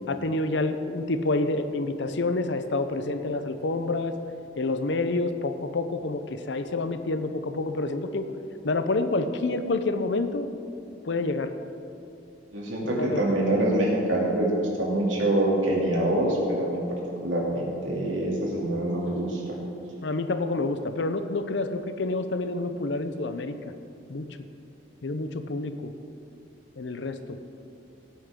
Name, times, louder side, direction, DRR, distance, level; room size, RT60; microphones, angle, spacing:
voice 1, 0.1-4.1 4.6-8.3 8.6-10.5 11.0-11.5 13.0-13.4 20.0-23.6 24.1-24.3 25.0-25.9 26.8-27.5, left 2 dB, 70° left, 9 dB, 0.7 m, -28 dB
voice 2, 12.5-14.5 14.8-16.8 17.2-19.4, right 1 dB, 85° right, -3 dB, 2.7 m, -25 dB
17.0 x 8.5 x 3.7 m, 2.7 s
head